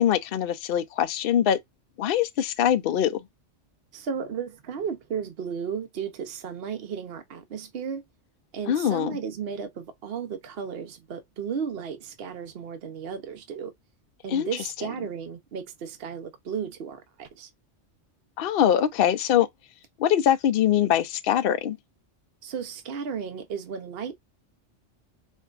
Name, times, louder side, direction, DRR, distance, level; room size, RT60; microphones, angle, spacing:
voice 1, 0.0-1.6 2.0-3.2 8.7-9.2 14.3-14.5 18.4-19.5 20.0-21.8, left 10 dB, 60° left, 0.7 m, -23 dB
voice 2, 3.9-8.0 8.5-13.7 14.2-17.5 22.4-24.1, right 7 dB, 60° right, 0.9 m, -34 dB
4.5 x 2.2 x 2.4 m
omnidirectional pair, 1.2 m